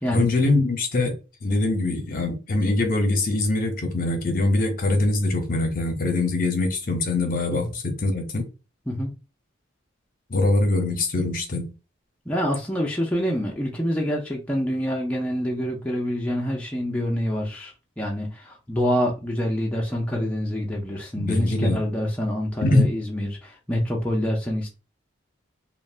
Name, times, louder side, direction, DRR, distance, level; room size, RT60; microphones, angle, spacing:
voice 1, 0.1-8.5 10.3-11.7 21.1-21.8 22.6-22.9, left 2 dB, 45° left, 0.7 m, -23 dB
voice 2, 12.3-24.7, equal, 5° left, 0.4 m, -26 dB
3.2 x 2.1 x 2.4 m
head